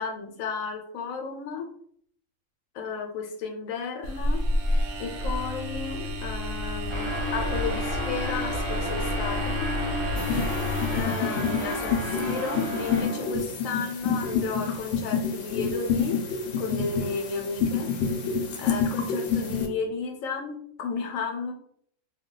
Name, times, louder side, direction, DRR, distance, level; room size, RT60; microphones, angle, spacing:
voice 1, 0.0-1.7 2.7-4.4 5.0-9.7 10.9-16.2 16.6-17.9 18.6-21.5, left 5 dB, 90° left, 3 dB, 1.0 m, -33 dB
sound 1, 4.0-11.0, left 1 dB, 65° right, 0.8 m, -29 dB
sound 2, 6.9-13.5, equal, 50° left, 0.3 m, -32 dB
sound 3, 10.2-19.7, left 6 dB, 70° left, 0.8 m, -28 dB
2.3 x 2.2 x 3.7 m, 0.64 s
omnidirectional pair, 1.4 m